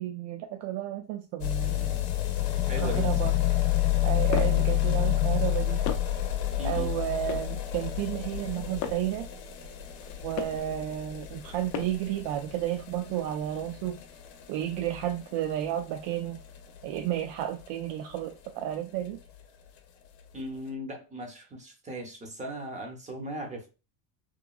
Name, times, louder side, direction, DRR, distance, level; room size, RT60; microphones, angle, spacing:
voice 1, 0.0-2.0 2.8-3.3 4.0-5.8 6.6-9.3 10.2-14.0 14.5-16.4 16.8-19.2, right 12 dB, 75° right, 4 dB, 0.5 m, -32 dB
sound 1, 1.4-18.2 18.4-18.5 18.7-18.8 19.1-19.2 19.4-19.5 20.2-20.3, left 14 dB, 75° left, 0.7 m, -30 dB
voice 2, 2.6-3.4 6.6-6.9 20.3-23.7, right 1 dB, 15° right, 2 dB, 0.6 m, -38 dB
sound 2, 3.9-4.7 5.4-6.3 6.9-7.6 8.3-9.2 9.9-10.7 11.3-12.1, left 7 dB, 45° left, 0.4 m, -38 dB
3.1 x 2.2 x 2.2 m, 0.31 s
cardioid pair, 135°, 44 cm